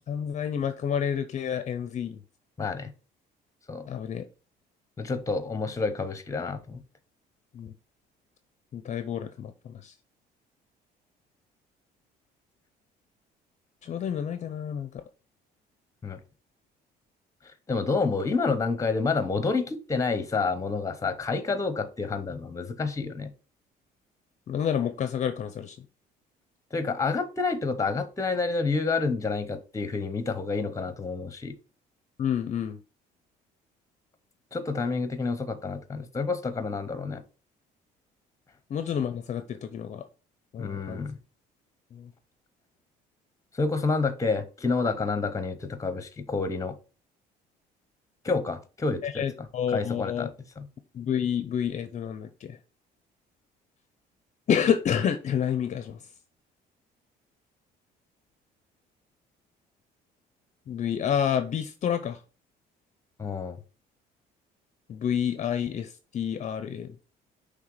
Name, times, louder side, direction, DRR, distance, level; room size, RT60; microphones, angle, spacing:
voice 1, 0.1-2.2 3.9-4.3 7.5-7.7 8.7-9.9 13.8-15.0 24.5-25.8 32.2-32.8 38.7-40.0 40.5-41.0 41.9-42.1 49.0-50.3 50.9-52.6 54.5-56.1 60.7-62.2 64.9-67.0, left 8 dB, 45° left, 0.6 m, -29 dB
voice 2, 2.6-2.9 3.7-3.9 5.0-6.8 16.0-16.2 17.4-23.3 26.7-31.6 34.5-37.2 40.6-41.2 43.5-46.8 48.2-49.2 49.7-50.3 50.6-50.7 63.2-63.6, left 4 dB, 20° left, 0.9 m, -29 dB
5.8 x 3.3 x 4.8 m
cardioid pair, 110°, 17 cm